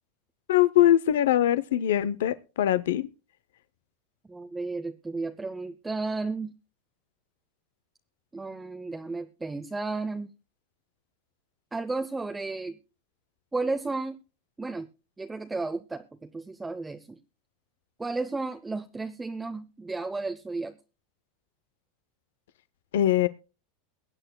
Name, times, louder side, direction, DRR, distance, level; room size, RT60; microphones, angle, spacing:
voice 1, 0.5-3.1 22.9-23.3, left 12 dB, 85° left, 0.6 m, -22 dB
voice 2, 4.3-6.5 8.3-10.3 11.7-12.8 13.5-14.2 14.6-14.9 15.2-17.2 18.0-20.7, right 3 dB, 10° right, 0.7 m, -33 dB
22.5 x 8.9 x 2.2 m
supercardioid pair, 135°, 0 cm